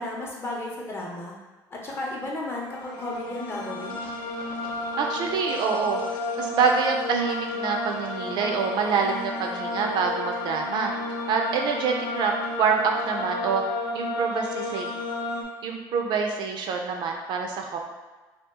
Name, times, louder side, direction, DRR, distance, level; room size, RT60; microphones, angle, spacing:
voice 1, 0.0-1.4 1.7-4.0, left 1 dB, 25° left, -2 dB, 0.7 m, -33 dB
sound 1, 2.6-15.4, left 2 dB, 75° left, 0.6 m, -32 dB
voice 2, 5.0-6.0 6.4-10.9 11.3-13.6 13.9-14.9 15.6-17.8, right 5 dB, 55° right, 2 dB, 0.4 m, -26 dB
2.8 x 2.3 x 3.5 m, 1.2 s
cardioid pair, 135°, 9 cm